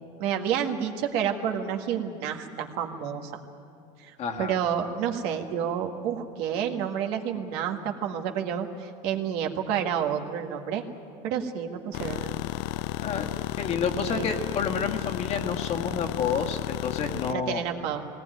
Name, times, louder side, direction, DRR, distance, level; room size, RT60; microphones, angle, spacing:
voice 1, 0.2-3.3 4.0-10.8 11.2-12.4 14.0-14.3 17.2-18.1, right 8 dB, 70° right, 3 dB, 1.8 m, -30 dB
voice 2, 4.2-4.5 13.0-13.3 13.5-17.6, left 6 dB, 40° left, 4 dB, 1.6 m, -29 dB
sound 1, 11.9-17.3, left 16 dB, 75° left, 0.5 m, -32 dB
19.5 x 18.0 x 9.3 m, 2.6 s
cardioid pair, 145°, 17 cm